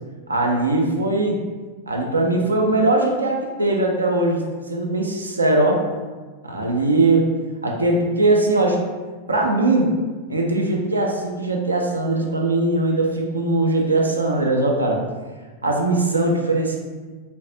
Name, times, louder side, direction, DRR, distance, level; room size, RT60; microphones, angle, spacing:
voice 1, 0.3-1.4 1.9-5.8 6.5-7.3 7.6-8.8 9.3-9.9 10.3-15.0 15.6-16.8, right 2 dB, 80° right, 1 dB, 0.4 m, -20 dB
3.8 x 2.2 x 2.7 m, 1.4 s
figure-of-eight pair, 90°, 0 cm